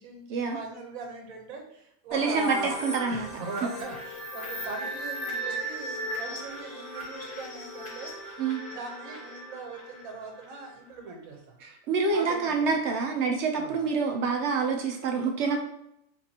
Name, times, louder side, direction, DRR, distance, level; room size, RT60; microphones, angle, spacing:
voice 1, 0.0-2.7 3.1-8.4 8.7-11.6 12.0-12.7 13.5-13.8, right 3 dB, 80° right, 3 dB, 1.2 m, -40 dB
sound 1, 2.1-10.7, right 1 dB, 40° left, 1.2 m, -37 dB
voice 2, 2.1-3.3 8.4-8.6 11.6-15.6, right 4 dB, 65° right, 3 dB, 0.8 m, -27 dB
4.4 x 2.9 x 2.8 m, 0.77 s
omnidirectional pair, 1.4 m